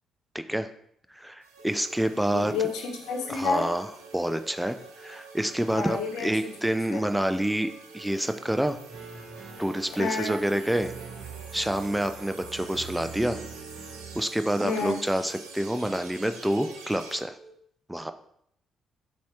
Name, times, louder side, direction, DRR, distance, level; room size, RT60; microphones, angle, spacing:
voice 1, 0.3-0.7 1.1-2.5 3.3-3.9 4.1-8.8 9.6-10.9 11.5-13.4 14.1-17.4 17.9-18.1, right 1 dB, 5° right, 9 dB, 0.6 m, -27 dB
sound 1, 1.4-17.2, right 4 dB, 70° right, 0.9 m, -48 dB
sound 2, 1.6-17.5, right 4 dB, 25° left, 1.3 m, -53 dB
voice 2, 2.3-3.7 5.7-6.5 6.9-7.1 10.0-10.4 14.6-15.0, left 4 dB, 60° left, 2 dB, 1.1 m, -30 dB
sound 3, 8.9-14.2, right 5 dB, 50° right, 1.4 m, -43 dB
7.2 x 2.8 x 4.7 m, 0.68 s
figure-of-eight pair, 45°, 0 cm